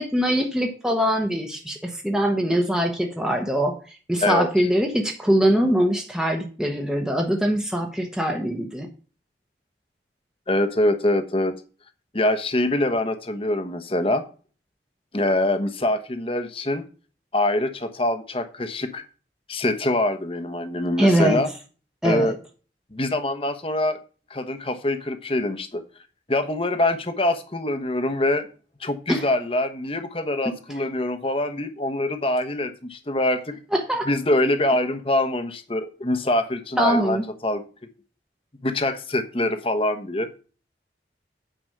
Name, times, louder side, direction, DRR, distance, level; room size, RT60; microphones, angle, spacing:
voice 1, 0.0-3.8 4.1-8.9 21.0-21.4 22.0-22.3 29.1-29.2 33.7-34.1 36.8-37.2, right 1 dB, 5° right, 2 dB, 1.0 m, -22 dB
voice 2, 4.2-4.7 10.5-11.6 12.1-14.2 15.1-16.9 17.3-19.0 19.5-21.5 22.0-22.4 22.9-24.0 24.3-25.8 26.3-28.5 28.8-33.6 34.0-37.6 38.6-40.4, left 1 dB, 30° left, 9 dB, 1.1 m, -24 dB
9.2 x 5.2 x 6.6 m, 0.37 s
head